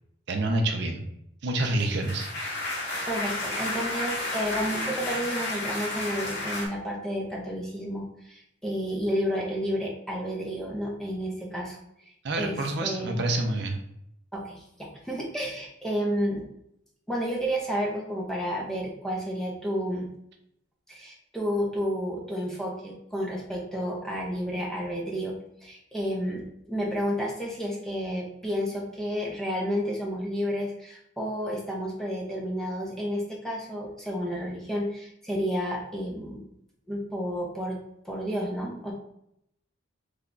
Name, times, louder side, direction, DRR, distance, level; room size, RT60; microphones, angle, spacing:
voice 1, 0.3-1.0 1.4-2.3 12.2-13.8, right 2 dB, 55° right, 4 dB, 0.5 m, -27 dB
sound 1, 1.6-6.7, left 1 dB, 55° left, 1.2 m, -32 dB
voice 2, 3.1-11.8 12.4-13.2 14.3-16.4 17.1-20.1 20.9-25.3 25.6-36.4 36.9-37.8 38.0-38.9, equal, ahead, -2 dB, 0.6 m, -31 dB
3.3 x 2.2 x 3.8 m, 0.77 s
head